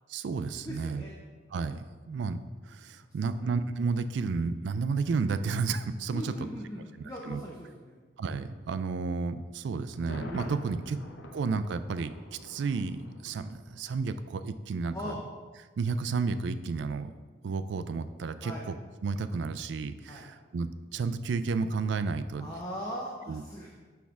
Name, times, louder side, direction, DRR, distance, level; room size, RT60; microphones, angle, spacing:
voice 1, 0.1-1.0 1.5-2.4 2.6-6.3 7.2-7.4 8.2-11.0 11.3-15.1 15.8-17.1 17.4-18.7 19.0-22.5 23.3-23.4, right 4 dB, 70° right, 12 dB, 0.3 m, -32 dB
voice 2, 0.6-1.2 3.3-3.5 6.1-8.0 14.9-15.2 18.4-18.6 20.1-20.3 22.4-23.7, equal, 20° left, -3 dB, 0.6 m, -40 dB
Thunder, 9.9-13.8 14.1-14.2, left 1 dB, 80° left, 0.8 m, -44 dB
6.3 x 3.5 x 5.9 m, 1.4 s
head